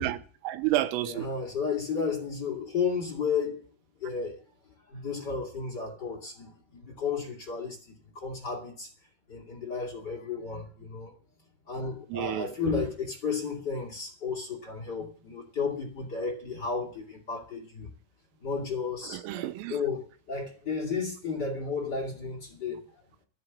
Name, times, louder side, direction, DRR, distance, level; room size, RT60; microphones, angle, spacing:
voice 1, 0.0-1.3 12.1-12.6 19.0-19.8, right 15 dB, 85° right, 3.5 m, -30 dB
voice 2, 1.0-3.6 4.0-4.4 4.9-8.9 9.3-11.1 11.7-17.9 18.4-23.0, left 5 dB, 35° left, 1.8 m, -33 dB
13.0 x 9.4 x 7.4 m
omnidirectional pair, 5.9 m